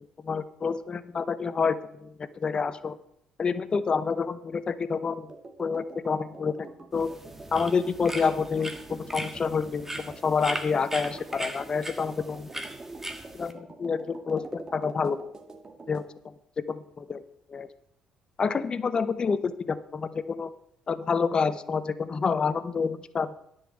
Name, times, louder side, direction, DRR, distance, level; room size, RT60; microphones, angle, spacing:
voice 1, 0.2-2.9 3.4-5.3 5.6-6.7 6.9-7.1 7.5-12.6 13.3-15.2 15.9-16.3 16.7-17.2 17.5-17.7 18.4-20.5 20.9-23.3, left 5 dB, 40° left, 13 dB, 0.8 m, -28 dB
sound 1, 5.3-16.1, right 3 dB, 30° right, 1.8 m, -47 dB
sound 2, 6.9-13.5, right 1 dB, 15° right, 1.6 m, -39 dB
10.0 x 5.6 x 7.9 m, 0.72 s
supercardioid pair, 60°, 2 cm